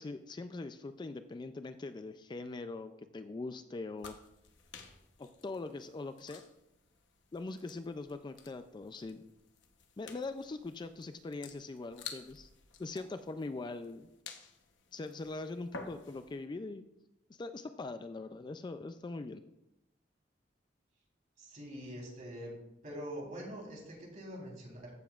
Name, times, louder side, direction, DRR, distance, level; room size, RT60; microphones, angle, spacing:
voice 1, 0.0-4.2 5.2-6.4 7.3-9.3 10.0-12.5 12.8-14.1 14.9-16.8 17.3-19.4, left 3 dB, 25° left, 10 dB, 0.3 m, -42 dB
sound 1, 4.0-16.4, left 5 dB, 75° left, 1.0 m, -52 dB
voice 2, 21.4-22.5 22.8-24.9, equal, 45° right, -3 dB, 3.6 m, -44 dB
14.5 x 7.0 x 2.4 m, 0.86 s
head